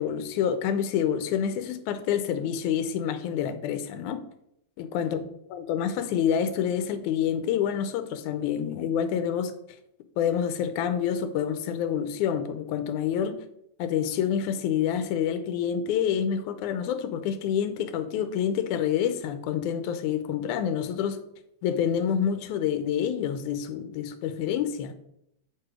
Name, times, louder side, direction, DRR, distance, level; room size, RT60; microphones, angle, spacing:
voice 1, 0.0-4.2 4.8-5.2 5.5-9.5 10.2-13.4 13.8-21.2 21.6-24.9, left 8 dB, 85° left, 2.1 m, -27 dB
8.5 x 4.8 x 4.8 m
omnidirectional pair, 3.4 m